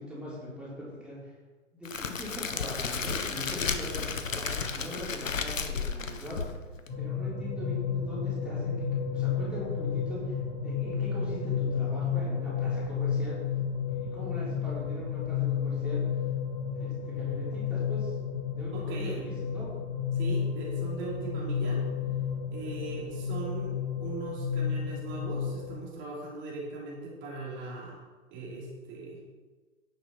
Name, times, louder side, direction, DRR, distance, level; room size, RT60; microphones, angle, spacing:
voice 1, 0.0-1.3 1.7-6.5 7.0-13.4 14.0-16.2 16.8-18.2 18.5-19.7, left 1 dB, 5° right, -9 dB, 4.0 m, -41 dB
Crackle, 1.8-6.9, left 5 dB, 80° left, 1.1 m, -33 dB
sound 1, 6.9-25.8, left 6 dB, 50° left, 3.7 m, -31 dB
voice 2, 18.7-19.1 20.1-21.8 22.5-28.0 28.3-29.2, right 4 dB, 30° right, -4 dB, 2.9 m, -40 dB
10.0 x 6.9 x 5.8 m, 1.3 s
figure-of-eight pair, 110°, 39 cm